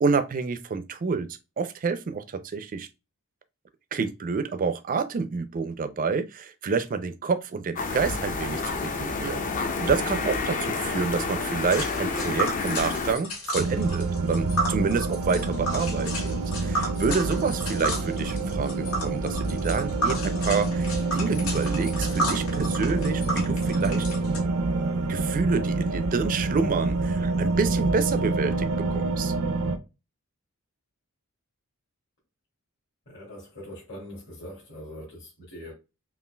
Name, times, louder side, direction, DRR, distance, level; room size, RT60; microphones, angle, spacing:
voice 1, 0.0-2.9 3.9-9.5 9.8-24.0 25.1-29.3, right 5 dB, 40° right, 0.4 m, -28 dB
sound 1, 7.8-13.1, left 4 dB, 35° left, 0.5 m, -29 dB
Tick, 11.7-24.4, equal, 80° left, 1.6 m, -32 dB
sound 2, 13.6-29.8, right 3 dB, 90° right, 0.5 m, -27 dB
voice 2, 33.1-35.7, equal, 55° left, 2.0 m, -42 dB
5.5 x 2.4 x 2.2 m
head